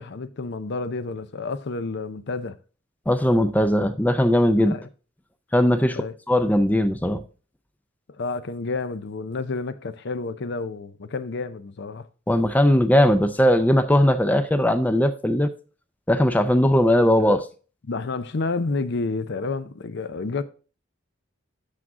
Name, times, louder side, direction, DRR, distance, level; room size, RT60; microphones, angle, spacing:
voice 1, 0.0-2.6 4.7-4.8 6.0-6.1 8.2-12.1 17.2-17.4 17.9-20.4, left 3 dB, 60° left, 0.6 m, -30 dB
voice 2, 3.1-4.8 5.5-6.0 6.3-7.2 12.3-15.5 16.1-17.4, left 1 dB, 10° left, 0.4 m, -19 dB
8.5 x 6.1 x 3.6 m
head